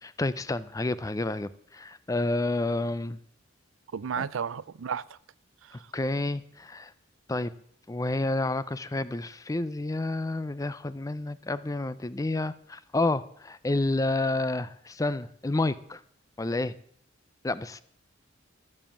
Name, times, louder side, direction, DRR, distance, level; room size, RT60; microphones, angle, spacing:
voice 1, 0.0-3.2 4.2-4.3 5.7-6.9 7.3-7.5 7.9-16.0 16.4-16.7 17.4-17.8, left 2 dB, 15° left, 0.4 m, -29 dB
voice 2, 3.9-5.2 5.6-5.9, right 7 dB, 85° right, 0.5 m, -33 dB
13.0 x 7.1 x 7.2 m
head